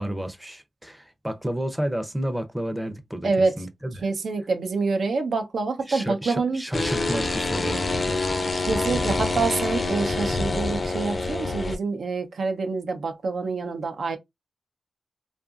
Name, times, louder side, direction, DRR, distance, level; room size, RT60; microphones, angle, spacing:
voice 1, 0.0-4.0 5.9-8.3, right 1 dB, 5° right, 0.5 m, -31 dB
voice 2, 3.2-3.6 4.0-6.6 8.6-14.2, right 4 dB, 80° right, 0.6 m, -26 dB
sound 1, 6.7-11.8, left 2 dB, 40° left, 0.5 m, -26 dB
2.7 x 2.5 x 2.3 m
cardioid pair, 65°, 0 cm